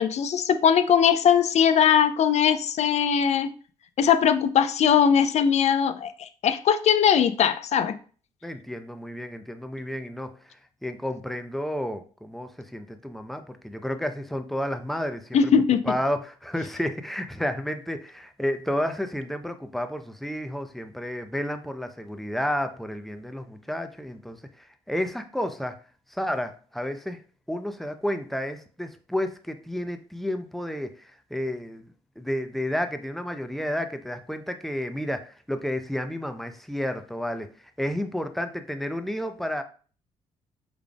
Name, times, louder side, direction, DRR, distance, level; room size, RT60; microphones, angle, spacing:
voice 1, 0.0-3.5 4.0-8.0 15.3-15.8, left 8 dB, 50° left, 0.5 m, -20 dB
voice 2, 8.4-15.5 15.8-25.8 26.1-27.2 27.5-39.6, equal, ahead, 0.6 m, -31 dB
4.8 x 3.4 x 2.4 m
hypercardioid pair, 50°, 14 cm